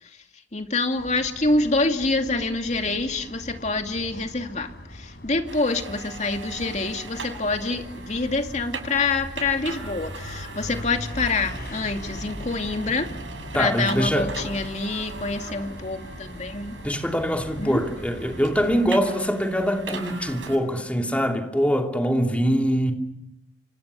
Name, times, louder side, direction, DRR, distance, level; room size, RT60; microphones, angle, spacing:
voice 1, 0.5-13.1 13.6-16.8 17.6-17.8, left 3 dB, 40° left, 2.5 m, -26 dB
sound 1, 1.0-18.9, left 1 dB, 55° left, 4.8 m, -40 dB
sound 2, 5.5-20.6, right 4 dB, 85° right, 7.5 m, -40 dB
voice 2, 13.5-14.3 16.8-22.9, equal, 5° left, 2.8 m, -23 dB
29.5 x 26.0 x 7.0 m
head